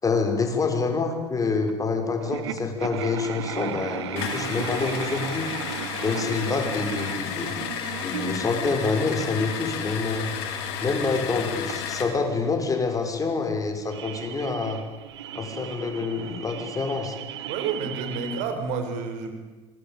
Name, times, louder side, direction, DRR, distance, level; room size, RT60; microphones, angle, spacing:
voice 1, 0.0-5.5 6.0-7.6 8.0-10.3 10.8-14.8 15.3-17.2, left 4 dB, 25° left, 5 dB, 6.0 m, -27 dB
sound 1, 1.7-1.8 2.2-18.4, right 9 dB, 80° right, 1.9 m, -37 dB
sound 2, 4.2-12.2, left 8 dB, 70° left, 5.0 m, -32 dB
voice 2, 17.5-19.4, right 5 dB, 65° right, 7 dB, 5.3 m, -30 dB
26.0 x 22.5 x 9.2 m, 1.2 s
hypercardioid pair, 75°, 14 cm